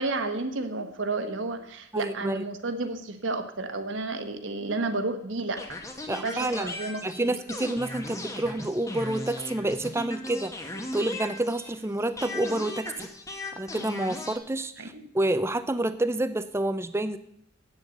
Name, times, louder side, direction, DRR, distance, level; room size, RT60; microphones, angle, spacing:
voice 1, 0.0-5.6 6.1-7.3 14.8-15.1, right 3 dB, 65° right, 6 dB, 1.1 m, -31 dB
voice 2, 1.9-2.4 6.1-6.7 7.0-10.5 10.9-13.1 13.6-17.2, right 1 dB, 10° right, 12 dB, 0.4 m, -28 dB
sound 1, 5.6-11.8 12.2-14.4, left 1 dB, 15° left, 1.0 m, -37 dB
8.3 x 7.3 x 7.7 m, 0.74 s
head